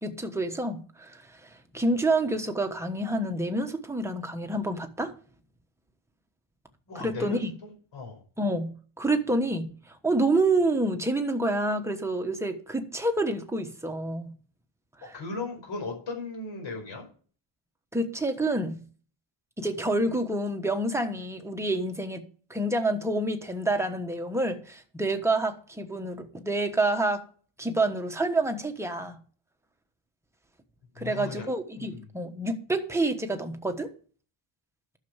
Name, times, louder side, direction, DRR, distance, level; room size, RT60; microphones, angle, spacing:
voice 1, 0.0-5.1 6.9-7.5 8.4-14.3 17.9-18.8 19.6-22.2 22.5-27.2 27.6-29.2 31.0-33.9, right 2 dB, 5° right, 1.2 m, -28 dB
voice 2, 6.9-8.2 15.0-17.1 31.0-31.5 31.8-32.0, left 3 dB, 60° left, 5.3 m, -37 dB
11.5 x 6.7 x 7.2 m
wide cardioid pair, 170°, 50 cm